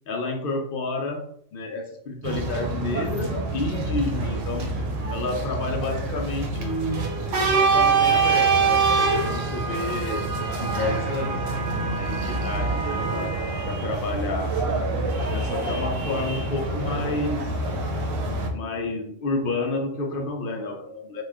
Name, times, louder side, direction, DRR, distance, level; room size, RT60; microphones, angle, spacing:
voice 1, 0.1-4.8 5.1-7.1 7.4-10.3 10.6-11.5 11.9-14.9 15.3-17.6 18.3-21.2, left 2 dB, 60° left, 3 dB, 0.6 m, -30 dB
sound 1, 2.2-18.5, right 4 dB, 80° right, 1.0 m, -25 dB
3.0 x 2.2 x 3.4 m, 0.66 s
omnidirectional pair, 1.3 m